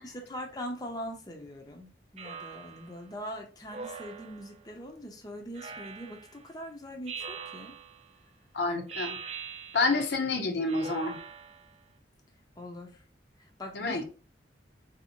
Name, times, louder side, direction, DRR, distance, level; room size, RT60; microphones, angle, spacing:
voice 1, 0.0-7.8 12.6-13.0 13.4-14.0, equal, 20° left, 0.6 m, -42 dB
Speech synthesizer, 2.2-3.0 3.7-4.6 5.5-6.4 7.1-8.1 8.9-10.1 10.7-11.7, right 6 dB, 35° right, 0.3 m, -42 dB
voice 2, 8.5-9.2 9.7-11.2 13.7-14.0, left 3 dB, 65° left, 0.6 m, -28 dB
4.0 x 2.7 x 2.8 m
head